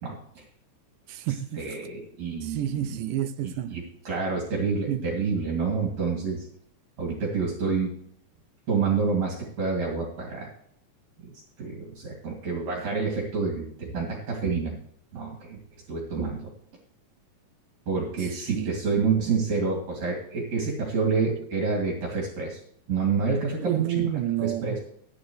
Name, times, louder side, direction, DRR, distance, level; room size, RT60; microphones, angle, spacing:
voice 1, 0.0-0.4 1.5-3.0 3.4-6.5 7.0-8.0 8.7-10.5 11.2-11.3 11.6-14.8 15.1-15.6 15.9-16.5 17.9-22.6 22.9-24.1 24.4-24.8, right 4 dB, 60° right, 3.8 m, -28 dB
voice 2, 1.1-1.7 2.4-3.8 4.9-5.0 18.5-18.8 23.6-24.8, right 13 dB, 85° right, 2.2 m, -29 dB
15.5 x 9.9 x 3.2 m
omnidirectional pair, 3.6 m